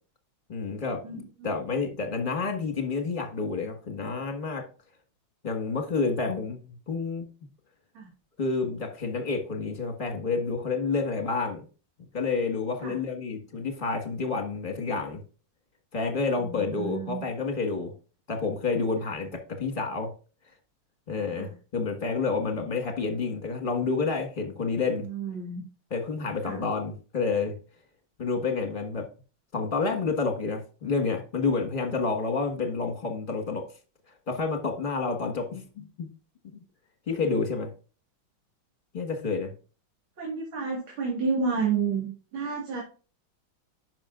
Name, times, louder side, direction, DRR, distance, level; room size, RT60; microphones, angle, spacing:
voice 1, 0.5-1.0 1.4-4.6 5.4-7.2 8.4-11.6 12.1-15.2 15.9-17.9 18.3-20.1 21.1-25.0 25.9-27.5 28.2-29.1 29.5-33.6 34.3-36.1 37.1-37.7 38.9-39.5, left 4 dB, 25° left, 4 dB, 1.6 m, -29 dB
voice 2, 1.0-1.5 7.9-8.1 12.8-13.0 16.4-17.2 19.0-19.1 21.3-21.5 25.1-25.6 26.4-26.6 40.2-42.8, right 5 dB, 70° right, -1 dB, 2.7 m, -31 dB
10.5 x 6.1 x 2.5 m, 0.35 s
omnidirectional pair, 2.3 m